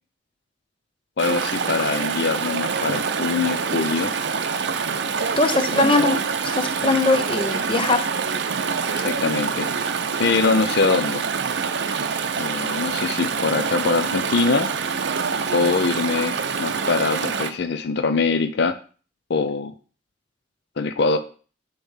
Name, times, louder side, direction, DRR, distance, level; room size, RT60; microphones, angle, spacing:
voice 1, 1.2-4.1 5.7-5.9 8.9-9.7 10.2-11.2 12.4-14.7 15.5-18.8 19.3-19.7 20.8-21.2, left 4 dB, 60° left, 9 dB, 0.5 m, -23 dB
Chatter / Stream, 1.2-17.5, right 5 dB, 65° right, 0.6 m, -26 dB
voice 2, 5.4-8.1, left 2 dB, 30° left, 7 dB, 0.8 m, -21 dB
6.9 x 3.1 x 5.6 m, 0.38 s
head